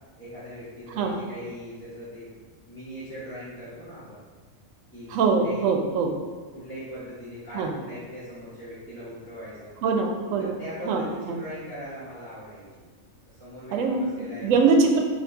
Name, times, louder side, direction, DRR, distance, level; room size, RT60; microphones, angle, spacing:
voice 1, 0.2-4.2 4.9-5.1 5.4-5.7 6.5-9.8 10.4-12.9 13.3-14.5, equal, 10° left, -13 dB, 0.9 m, -40 dB
voice 2, 5.1-6.1 7.5-7.7 9.8-10.6 10.9-11.4 13.7-14.0 14.4-15.0, right 4 dB, 85° right, 2 dB, 1.0 m, -23 dB
4.3 x 2.6 x 3.8 m, 1.5 s
omnidirectional pair, 1.3 m